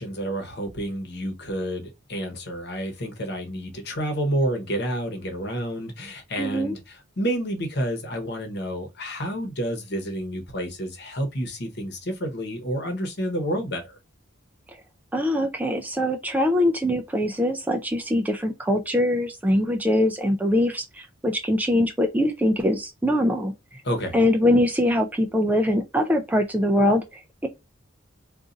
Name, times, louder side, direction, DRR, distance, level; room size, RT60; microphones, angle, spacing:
voice 1, 0.0-14.0 23.8-24.2, right 1 dB, 55° left, 1.0 m, -29 dB
voice 2, 6.4-6.8 15.1-23.5 24.1-27.5, left 1 dB, 10° right, 0.3 m, -23 dB
2.5 x 2.4 x 3.9 m
head